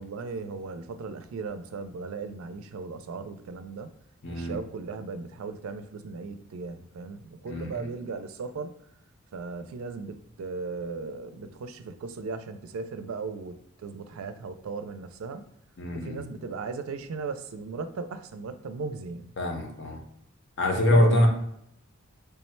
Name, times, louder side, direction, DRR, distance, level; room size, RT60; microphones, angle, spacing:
voice 1, 0.0-3.9 4.3-8.8 9.3-15.5 15.9-19.3 20.7-21.1, right 4 dB, 85° right, 0.4 m, -37 dB
voice 2, 4.2-4.6 7.5-7.8 15.8-16.2 19.4-20.0 20.6-21.3, left 1 dB, 60° left, 0.7 m, -24 dB
3.4 x 2.1 x 4.3 m
head